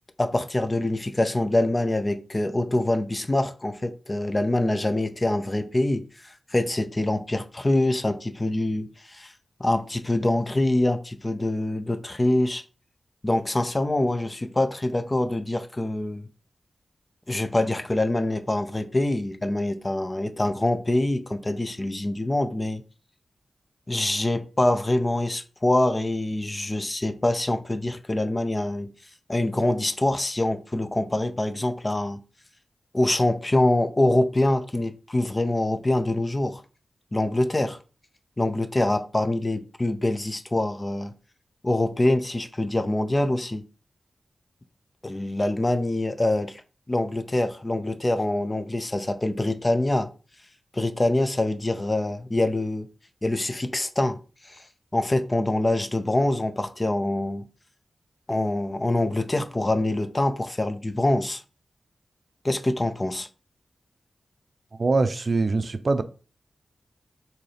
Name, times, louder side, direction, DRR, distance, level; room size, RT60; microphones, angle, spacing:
voice 1, 0.2-9.3 9.6-12.6 13.2-16.3 17.3-22.8 23.9-28.9 29.3-32.2 32.9-36.6 37.1-37.8 38.4-41.1 41.6-43.7 45.0-46.6 46.9-50.1 50.7-52.9 53.2-54.2 54.5-54.6 54.9-57.5 58.3-61.4 62.4-63.3, left 1 dB, 30° left, 0.5 m, -25 dB
voice 2, 64.8-66.0, right 3 dB, 55° right, 0.4 m, -23 dB
3.8 x 2.8 x 3.3 m
cardioid pair, 50°, 0 cm